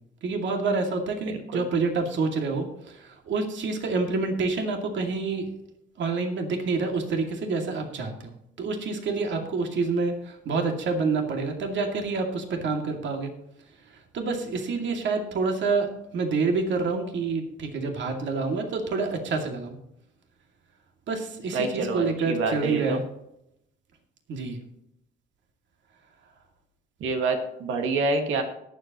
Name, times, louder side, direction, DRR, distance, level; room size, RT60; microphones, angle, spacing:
voice 1, 0.2-5.5 6.0-8.3 8.6-13.3 14.1-19.8 21.1-23.0 24.3-24.6, right 4 dB, 65° right, 3 dB, 2.3 m, -27 dB
voice 2, 1.3-1.6 21.5-23.0 27.0-28.4, right 3 dB, 85° right, 4 dB, 1.8 m, -27 dB
20.0 x 7.9 x 3.0 m, 0.80 s
cardioid pair, 90°, 20 cm